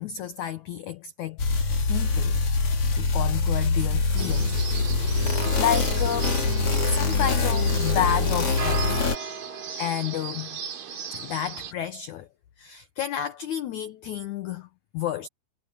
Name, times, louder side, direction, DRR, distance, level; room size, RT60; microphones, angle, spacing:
voice 1, 0.0-1.4 1.9-2.4 2.9-4.6 5.0-6.4 6.7-9.0 9.8-10.6 11.1-12.3 12.6-14.7 14.9-15.3, left 10 dB, 85° left, 1.7 m, -30 dB
sound 1, 1.4-9.2, left 4 dB, 40° left, 3.1 m, -24 dB
sound 2, 4.2-11.7, right 6 dB, 60° right, 4.5 m, -36 dB
omnidirectional pair, 4.7 m